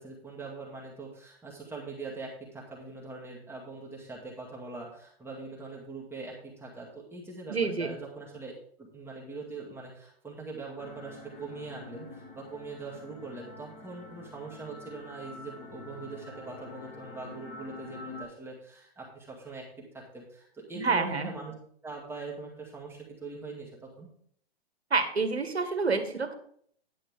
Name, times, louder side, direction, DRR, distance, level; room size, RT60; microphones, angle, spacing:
voice 1, 0.0-8.5 8.8-19.6 19.9-21.5 21.8-24.1, right 3 dB, 5° right, -4 dB, 2.0 m, -42 dB
voice 2, 7.5-7.9 20.7-21.3 24.9-26.3, right 4 dB, 80° right, 8 dB, 1.6 m, -28 dB
sound 1, 10.8-18.2, left 2 dB, 20° left, 1.7 m, -47 dB
10.5 x 8.6 x 3.6 m, 0.62 s
figure-of-eight pair, 115°, 31 cm